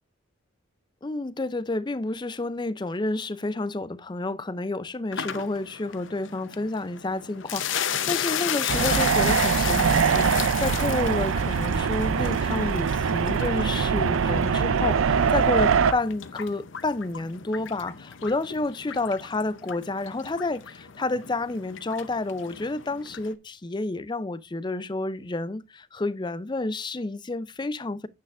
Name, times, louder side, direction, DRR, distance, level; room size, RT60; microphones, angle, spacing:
voice 1, 1.0-28.1, left 2 dB, 20° left, 0.4 m, -30 dB
sound 1, 5.1-23.3, left 8 dB, 65° left, 0.7 m, -34 dB
sound 2, 8.7-15.9, right 6 dB, 80° right, 0.5 m, -23 dB
9.4 x 9.2 x 2.5 m
head